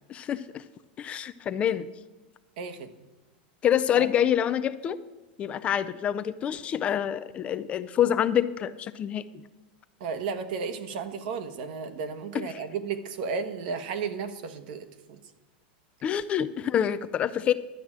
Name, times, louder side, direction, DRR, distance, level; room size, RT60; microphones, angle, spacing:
voice 1, 0.1-0.6 1.0-1.9 3.6-5.0 5.4-9.2 12.3-12.6 16.0-17.5, left 9 dB, 20° left, 12 dB, 0.4 m, -26 dB
voice 2, 2.6-2.9 4.0-4.1 10.0-15.2, right 5 dB, 55° right, 9 dB, 1.3 m, -33 dB
12.0 x 6.0 x 8.9 m, 1.1 s
supercardioid pair, 155°, 6 cm